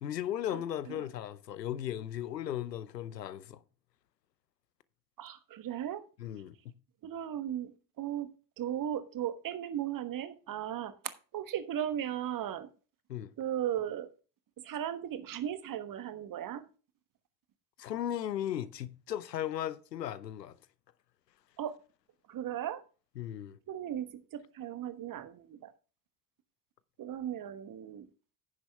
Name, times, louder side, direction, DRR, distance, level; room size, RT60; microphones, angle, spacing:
voice 1, 0.0-3.6 6.2-6.7 13.1-13.3 17.8-20.6 23.2-23.6, left 11 dB, 85° left, 0.7 m, -36 dB
voice 2, 5.2-6.0 7.0-7.7 8.0-8.3 8.6-12.7 13.4-14.1 14.6-16.6 21.6-21.8 22.3-22.8 23.7-25.7 27.0-28.1, right 10 dB, 40° right, 1.3 m, -36 dB
10.0 x 8.6 x 3.4 m
figure-of-eight pair, 55°, 48 cm